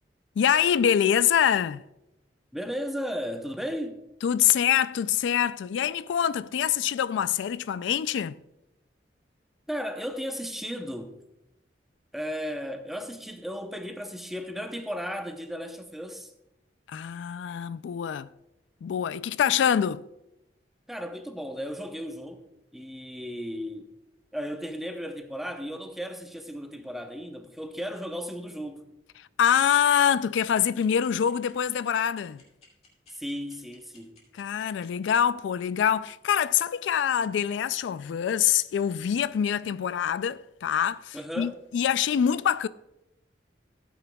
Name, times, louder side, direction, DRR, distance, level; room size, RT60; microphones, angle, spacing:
voice 1, 0.4-1.8 4.2-8.3 16.9-18.3 18.8-20.0 29.2-32.4 34.3-42.7, left 9 dB, 90° left, 0.3 m, -25 dB
voice 2, 2.5-4.0 9.7-11.2 12.1-16.3 20.9-22.4 22.7-23.9 24.3-28.8 33.1-34.2 41.1-41.6, equal, ahead, 0.7 m, -35 dB
sound 1, 30.4-35.1, left 4 dB, 35° left, 2.4 m, -56 dB
15.5 x 9.3 x 2.3 m
head